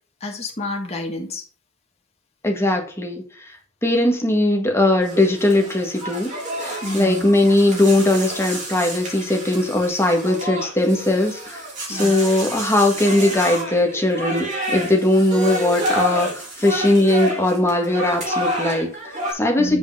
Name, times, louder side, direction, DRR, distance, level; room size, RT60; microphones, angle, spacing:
voice 1, 0.2-1.4 6.8-7.2 11.9-12.2 19.6-19.8, left 2 dB, 30° left, 1 dB, 1.6 m, -29 dB
voice 2, 2.4-3.6 3.8-19.8, left 1 dB, 10° left, 2 dB, 1.7 m, -19 dB
sound 1, 5.0-19.3, equal, 35° right, 3.8 m, -29 dB
7.9 x 5.2 x 4.8 m, 0.37 s
head